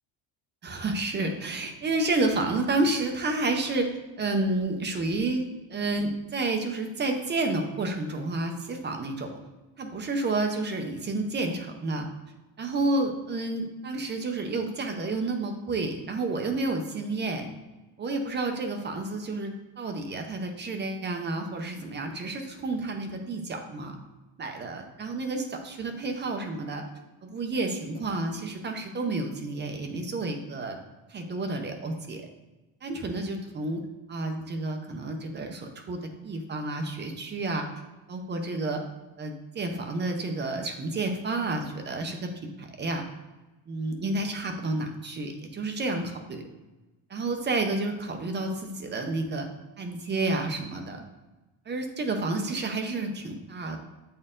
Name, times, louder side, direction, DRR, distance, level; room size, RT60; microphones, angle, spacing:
voice 1, 0.6-3.9 4.2-5.4 5.7-9.3 9.8-12.1 12.6-17.5 18.0-24.0 24.4-26.8 27.2-30.8 31.1-32.2 32.8-33.8 34.1-37.7 38.1-38.8 39.2-42.3 42.6-43.0 43.7-46.4 47.1-49.5 49.8-51.0 51.7-53.8, right 2 dB, 20° right, 4 dB, 0.5 m, -30 dB
7.7 x 4.4 x 3.7 m, 1.1 s
cardioid pair, 170°, 49 cm